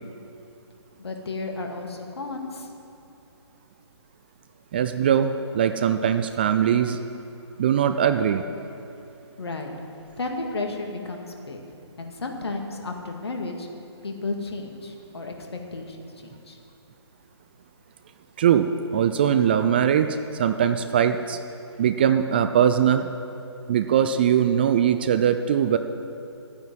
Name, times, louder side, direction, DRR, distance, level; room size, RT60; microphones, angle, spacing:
voice 1, 1.0-2.7 9.4-9.7 10.2-11.6 12.0-13.7 14.0-16.0 16.2-16.6, left 3 dB, 65° left, 2 dB, 2.0 m, -33 dB
voice 2, 4.7-7.0 7.6-8.4 18.4-21.4 21.8-23.1 23.7-25.8, right 9 dB, 20° right, 9 dB, 0.3 m, -21 dB
13.5 x 9.6 x 7.7 m, 2.8 s
figure-of-eight pair, 140°, 15 cm